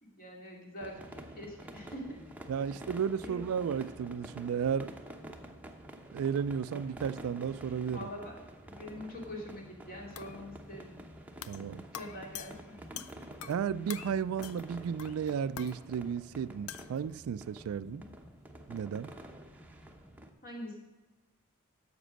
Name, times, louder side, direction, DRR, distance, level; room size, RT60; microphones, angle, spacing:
voice 1, 0.0-2.2 2.6-2.7 3.2-3.4 7.9-8.4 8.6-10.9 11.9-13.0 17.8-18.1 20.4-20.8, left 1 dB, 40° left, 2.4 m, -44 dB
sound 1, 0.8-20.3, right 1 dB, 5° right, 0.8 m, -49 dB
voice 2, 2.5-4.9 6.1-8.1 11.5-11.8 13.4-18.0 18.7-19.1, right 7 dB, 75° right, 0.3 m, -33 dB
sound 2, 10.2-10.4 11.4-11.7 11.9-13.6 13.9-14.1 14.4-14.7 15.0-15.8 16.7-17.0, left 10 dB, 75° left, 0.5 m, -45 dB
10.0 x 6.7 x 6.3 m
head